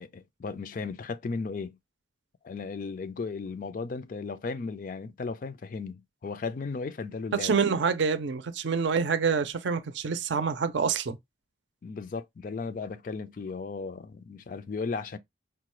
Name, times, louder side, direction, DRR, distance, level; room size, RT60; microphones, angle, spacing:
voice 1, 0.0-1.8 2.4-7.6 11.8-15.2, left 4 dB, 45° left, 0.3 m, -35 dB
voice 2, 7.3-11.2, right 5 dB, 70° right, 0.5 m, -27 dB
4.7 x 2.2 x 3.0 m
head